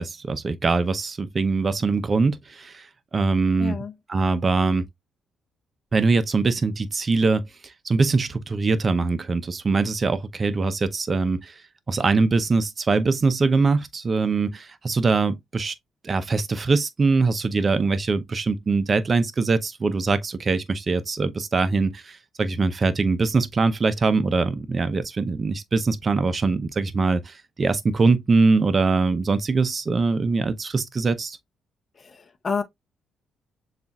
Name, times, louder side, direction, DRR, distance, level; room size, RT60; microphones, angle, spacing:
voice 1, 0.0-2.9 3.1-3.8 4.1-4.9 5.9-7.4 7.8-11.5 11.9-15.7 16.0-31.4, right 4 dB, 35° right, 0.6 m, -22 dB
voice 2, 3.6-3.9 32.0-32.6, left 5 dB, 35° left, 0.8 m, -29 dB
6.9 x 2.5 x 2.3 m
cardioid pair, 90°, 0 cm